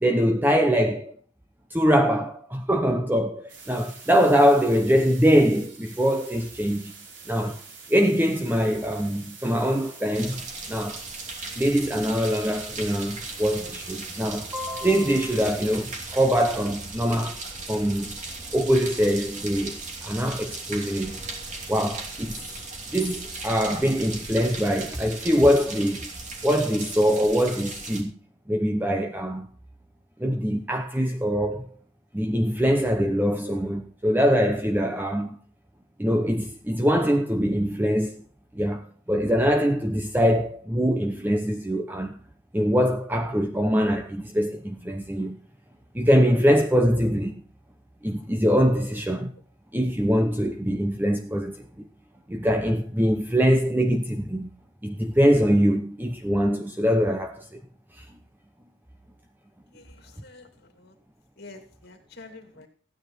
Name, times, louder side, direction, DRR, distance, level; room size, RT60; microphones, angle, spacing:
voice 1, 0.0-1.1 1.7-6.9 7.3-7.6 7.9-10.4 10.7-11.0 11.6-17.4 17.7-18.1 18.5-21.2 21.7-22.3 22.9-26.1 26.4-28.1 28.5-29.5 30.2-31.7 32.1-35.4 36.0-38.2 38.5-42.2 42.5-45.4 45.9-47.4 48.0-49.3 49.7-51.9 52.3-54.5 54.8-57.5 58.0-58.1, equal, 10° right, 0.8 m, -23 dB
sound 1, 3.5-16.0, right 4 dB, 60° right, 4.0 m, -46 dB
sound 2, 10.1-28.0, right 3 dB, 35° right, 2.8 m, -37 dB
voice 2, 59.7-60.9 61.4-62.7, left 3 dB, 55° left, 2.6 m, -48 dB
15.0 x 9.6 x 4.4 m
head